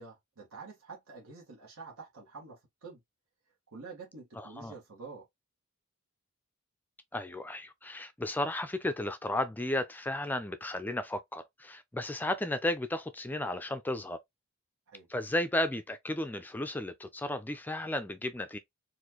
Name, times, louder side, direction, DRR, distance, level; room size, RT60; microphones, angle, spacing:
voice 1, 0.0-3.0 3.7-5.2 14.9-15.1, right 4 dB, 85° right, 1.5 m, -48 dB
voice 2, 4.4-4.7 7.1-14.2 15.1-18.6, left 1 dB, 10° left, 0.3 m, -34 dB
4.1 x 2.6 x 2.9 m
head